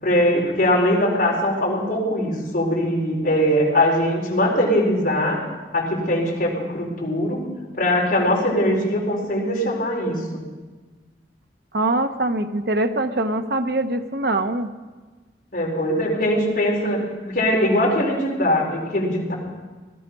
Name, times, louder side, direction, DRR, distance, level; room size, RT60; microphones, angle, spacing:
voice 1, 0.0-5.4 5.7-7.4 7.8-10.4 15.5-19.3, left 1 dB, 50° left, -3 dB, 4.4 m, -21 dB
voice 2, 11.7-14.7, right 2 dB, 65° right, 8 dB, 0.9 m, -23 dB
18.5 x 12.5 x 5.5 m, 1.3 s
head